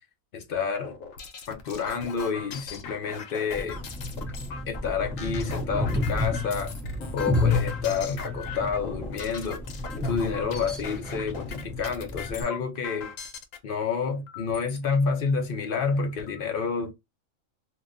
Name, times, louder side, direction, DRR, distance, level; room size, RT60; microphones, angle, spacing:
voice 1, 0.3-1.0 1.5-3.8 4.7-6.7 7.1-9.6 10.0-13.1 13.6-16.9, left 5 dB, 50° left, 0.8 m, -29 dB
sound 1, 0.7-13.6 14.3-14.8 15.4-15.5 15.8-16.4, left 5 dB, 75° left, 1.1 m, -40 dB
sound 2, 3.5-12.4, left 2 dB, ahead, 0.5 m, -31 dB
2.7 x 2.1 x 3.6 m
omnidirectional pair, 1.4 m